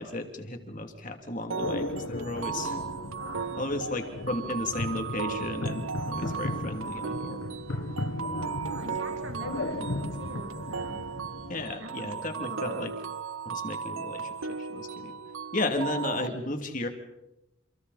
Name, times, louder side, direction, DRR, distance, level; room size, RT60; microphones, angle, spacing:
voice 1, 0.0-2.8 3.6-7.6 11.5-12.9 13.4-15.1 15.5-16.9, left 2 dB, 40° left, 4 dB, 2.9 m, -34 dB
sound 1, 1.5-16.3, right 6 dB, 90° right, 0.8 m, -36 dB
sound 2, 1.6-11.7, left 1 dB, 75° left, 1.6 m, -36 dB
voice 2, 8.7-11.0 11.8-12.9 16.2-16.3, right 1 dB, 65° right, 3 dB, 2.4 m, -44 dB
29.5 x 29.0 x 4.3 m, 0.92 s
head